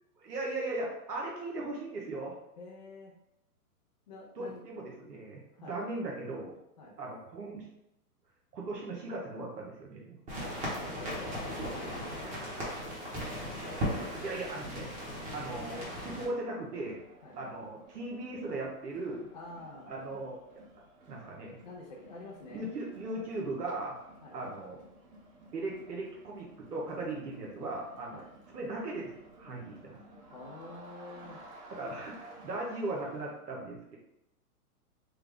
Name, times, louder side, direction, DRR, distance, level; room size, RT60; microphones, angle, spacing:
voice 1, 0.2-2.4 4.4-6.6 7.0-7.7 8.5-10.2 14.2-14.9 15.3-17.0 17.3-19.3 19.9-20.4 21.1-21.6 22.5-23.9 24.3-24.8 25.5-28.2 28.5-30.0 31.7-34.0, right 2 dB, 90° right, -2 dB, 1.0 m, -38 dB
voice 2, 2.6-3.1 4.1-4.6 5.5-5.8 6.8-7.0 10.3-13.6 17.2-17.4 19.3-19.9 21.6-22.7 24.2-24.4 28.1-28.3 30.3-31.4, left 2 dB, 35° left, -5 dB, 0.4 m, -47 dB
sound 1, 10.3-16.3, equal, 15° right, 0.8 m, -37 dB
Crowd, 13.9-33.4, right 1 dB, 60° right, 1.1 m, -55 dB
3.4 x 2.0 x 3.5 m, 0.84 s
hypercardioid pair, 130°, 46 cm